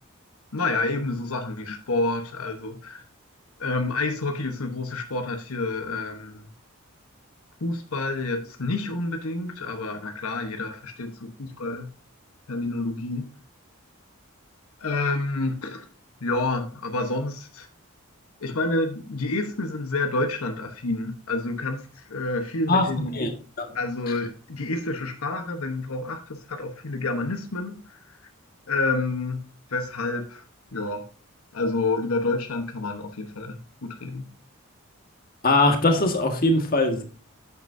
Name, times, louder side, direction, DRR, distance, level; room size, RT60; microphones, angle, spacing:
voice 1, 0.5-3.0 3.6-6.5 7.6-11.9 12.5-13.3 14.8-15.8 16.2-17.7 18.4-23.2 23.7-28.2 28.7-29.4 29.7-30.4 30.7-31.1 31.5-34.3, left 2 dB, 85° left, 1.1 m, -29 dB
voice 2, 22.7-23.7 35.4-37.0, left 2 dB, 40° left, 1.6 m, -22 dB
9.1 x 8.1 x 2.6 m
head